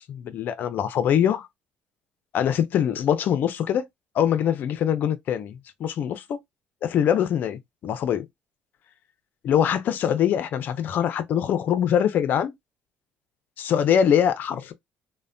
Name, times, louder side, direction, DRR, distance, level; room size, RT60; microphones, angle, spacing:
voice 1, 0.1-1.5 2.3-3.8 4.1-6.4 6.8-8.3 9.4-12.5 13.6-14.7, left 9 dB, 55° left, 0.5 m, -23 dB
3.1 x 2.1 x 2.5 m
cardioid pair, 110°, 4 cm